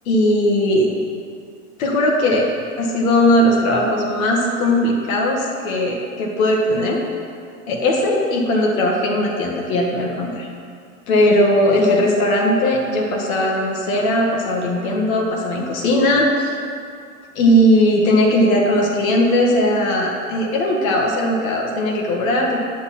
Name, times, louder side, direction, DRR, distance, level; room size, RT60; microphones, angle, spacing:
voice 1, 0.1-0.9 1.8-2.4 2.8-7.0 7.7-10.5 11.1-16.6 17.3-22.6, left 1 dB, 65° left, -2 dB, 1.7 m, -18 dB
9.4 x 6.3 x 4.2 m, 2.3 s
supercardioid pair, 125°, 44 cm